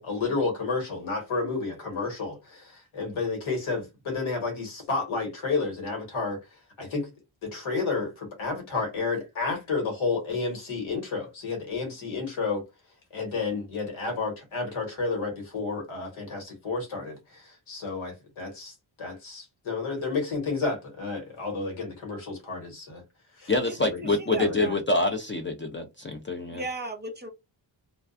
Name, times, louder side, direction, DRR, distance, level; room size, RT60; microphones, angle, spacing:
voice 1, 0.0-7.1 7.4-12.6 13.1-23.0 23.4-23.5 23.8-24.0 24.3-24.7, left 4 dB, 90° left, 1.3 m, -31 dB
voice 2, 23.5-26.6, left 2 dB, 25° left, 0.4 m, -26 dB
voice 3, 24.2-24.7 26.5-27.3, right 3 dB, 20° right, 0.7 m, -35 dB
2.4 x 2.2 x 2.5 m
cardioid pair, 90°, 47 cm